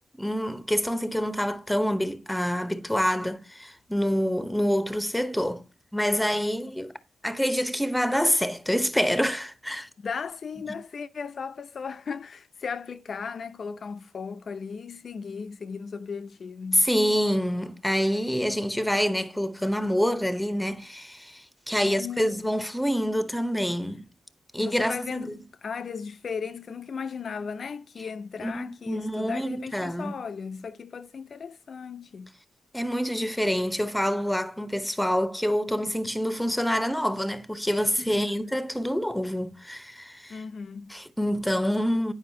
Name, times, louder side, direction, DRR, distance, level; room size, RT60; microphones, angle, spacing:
voice 1, 0.2-5.6 5.9-6.9 7.2-9.9 16.7-24.0 24.5-25.3 28.4-30.2 32.7-40.4 40.9-42.1, equal, 5° left, 0.8 m, -26 dB
voice 2, 10.0-16.9 21.8-22.5 24.6-32.3 38.1-38.6 40.3-40.9, left 5 dB, 55° left, 0.6 m, -36 dB
9.4 x 5.2 x 2.7 m
cardioid pair, 90°, 0 cm